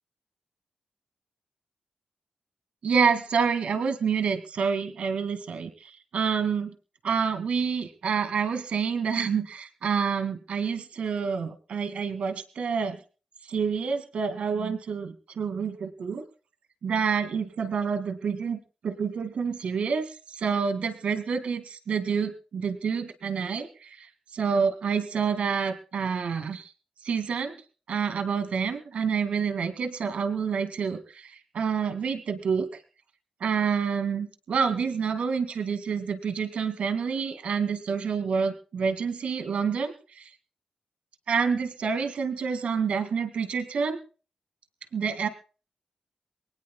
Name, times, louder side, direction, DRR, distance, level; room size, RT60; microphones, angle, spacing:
voice 1, 2.8-6.7 7.0-13.0 13.5-16.2 16.8-26.7 27.0-27.5 27.9-32.8 33.4-40.2 41.3-44.0 44.9-45.3, right 6 dB, 80° right, 8 dB, 2.3 m, -28 dB
24.0 x 19.0 x 2.3 m, 0.37 s
cardioid pair, 85°, 2 cm